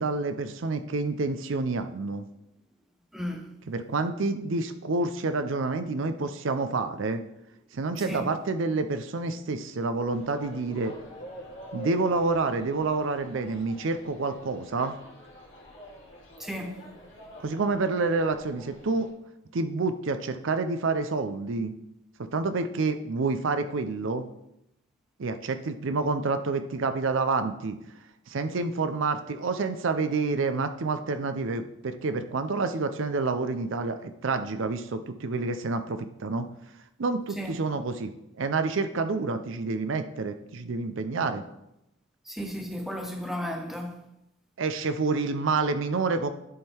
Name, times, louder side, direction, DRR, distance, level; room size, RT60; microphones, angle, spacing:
voice 1, 0.0-2.2 3.7-7.2 7.7-10.9 11.7-14.9 17.4-19.1 19.5-21.7 22.3-24.2 25.2-27.8 28.3-36.4 37.0-38.1 38.4-41.4 44.6-46.3, right 3 dB, 65° right, 0.5 m, -28 dB
voice 2, 3.1-3.5 8.1-8.3 16.4-16.9 37.4-37.5 42.3-44.0, equal, ahead, 0.7 m, -34 dB
sound 1, 10.1-19.1, equal, 60° left, 1.9 m, -46 dB
11.0 x 3.7 x 4.3 m
head